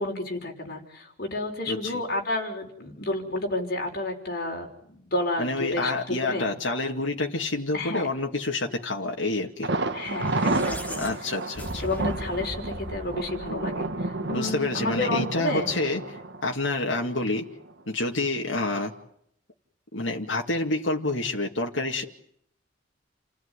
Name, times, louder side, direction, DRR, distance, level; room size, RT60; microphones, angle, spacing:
voice 1, 0.0-6.5 7.7-8.1 9.9-11.0 11.8-15.7, left 2 dB, 55° left, 2 dB, 5.9 m, -31 dB
voice 2, 1.7-2.0 5.4-9.7 11.0-11.8 14.3-17.5 17.9-18.9 19.9-22.0, left 2 dB, 75° left, 1 dB, 2.3 m, -28 dB
Thunder, 9.6-17.4 17.7-17.8 18.2-18.3, right 2 dB, 65° right, 1.8 m, -31 dB
sound 1, 10.0-14.4, equal, 10° left, 2.8 m, -39 dB
30.0 x 16.5 x 9.9 m, 0.70 s
head